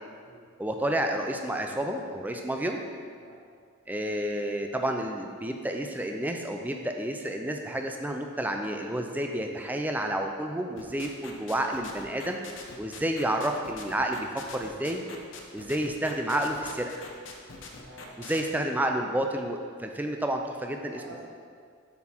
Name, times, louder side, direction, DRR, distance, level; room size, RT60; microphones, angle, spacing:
voice 1, 0.6-2.8 3.9-12.4 12.8-15.1 15.5-16.9 18.2-21.0, right 1 dB, 10° right, 3 dB, 0.4 m, -30 dB
sound 1, 10.8-18.4, left 4 dB, 65° left, 0.8 m, -43 dB
voice 2, 17.8-18.6 20.9-21.3, right 2 dB, 85° right, -5 dB, 0.9 m, -49 dB
7.4 x 6.0 x 4.4 m, 2.1 s
head